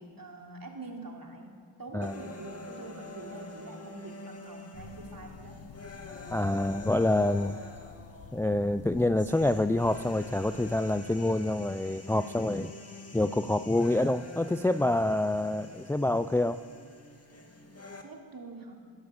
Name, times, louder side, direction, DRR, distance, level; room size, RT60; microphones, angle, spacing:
voice 1, 0.0-1.5 1.8-5.6 18.0-18.7, right 3 dB, 50° right, 0 dB, 3.2 m, -44 dB
sound 1, 2.0-18.0, left 3 dB, 35° left, 2.1 m, -47 dB
sound 2, 4.7-11.0, left 7 dB, 80° left, 0.8 m, -50 dB
voice 2, 6.3-7.5 8.3-12.7 13.1-16.6, left 1 dB, 5° left, 12 dB, 0.3 m, -27 dB
16.5 x 10.5 x 8.0 m, 2.1 s
cardioid pair, 50°, 45 cm